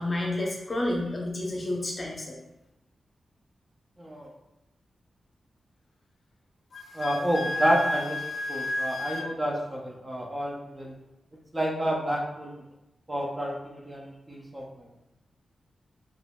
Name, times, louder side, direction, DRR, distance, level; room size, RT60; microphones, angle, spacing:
voice 1, 0.0-2.4, left 1 dB, 30° left, -1 dB, 0.7 m, -30 dB
voice 2, 4.0-4.3 6.9-8.2 8.5-11.0 11.5-12.6 13.1-14.9, equal, 25° right, -2 dB, 0.5 m, -29 dB
Wind instrument woodwind instrument, 6.7-9.3, left 1 dB, 60° left, 0.3 m, -31 dB
3.7 x 3.0 x 2.3 m, 0.92 s
wide cardioid pair, 105°, 0 cm